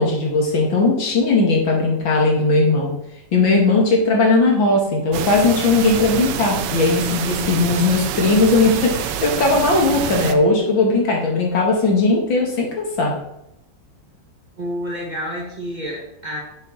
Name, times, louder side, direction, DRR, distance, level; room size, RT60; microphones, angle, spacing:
voice 1, 0.0-2.9 3.3-13.1, left 3 dB, 75° left, 0 dB, 2.9 m, -18 dB
sound 1, 5.1-10.3, right 9 dB, 70° right, 1.3 m, -26 dB
voice 2, 14.6-16.4, equal, 25° right, -3 dB, 2.2 m, -29 dB
9.8 x 7.3 x 4.2 m, 0.81 s
omnidirectional pair, 2.1 m